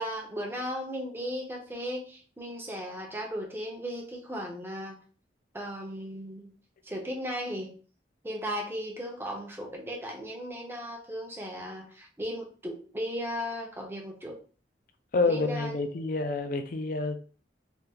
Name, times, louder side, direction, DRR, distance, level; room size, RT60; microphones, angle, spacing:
voice 1, 0.0-4.9 5.5-6.5 6.8-7.7 8.2-14.4 15.3-15.7, equal, 15° right, 0.7 m, -36 dB
voice 2, 15.1-17.2, left 3 dB, 50° left, 0.4 m, -28 dB
3.5 x 2.4 x 2.8 m
head